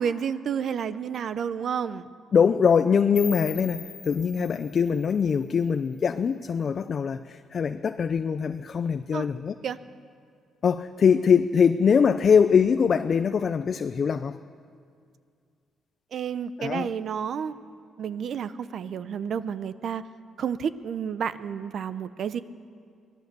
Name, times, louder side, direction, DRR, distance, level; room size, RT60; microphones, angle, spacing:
voice 1, 0.0-2.1 4.4-4.5 9.1-9.3 9.6-9.8 16.1-17.5 18.0-20.0 20.4-22.4, right 7 dB, 55° right, 14 dB, 0.7 m, -30 dB
voice 2, 2.3-9.6 10.6-14.4 16.6-16.9, left 6 dB, 40° left, 9 dB, 0.5 m, -22 dB
sound 1, 3.2-6.1, left 9 dB, 60° left, 1.6 m, -42 dB
24.0 x 17.5 x 6.8 m, 2.2 s
cardioid pair, 140°, 0 cm